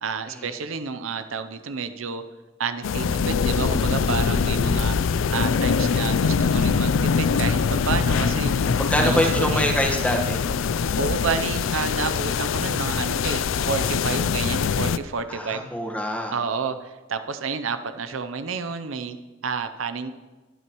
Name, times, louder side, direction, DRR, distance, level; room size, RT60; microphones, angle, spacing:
voice 1, 0.0-2.2 2.6-8.5 9.0-9.7 11.0-15.7 16.3-19.2 19.4-20.1, right 5 dB, 80° right, 10 dB, 0.7 m, -30 dB
sound 1, 2.8-15.0, left 5 dB, 70° left, 0.4 m, -23 dB
voice 2, 8.8-10.4 15.3-16.3, equal, 5° left, 1 dB, 1.4 m, -25 dB
20.0 x 9.6 x 3.1 m, 1.2 s
head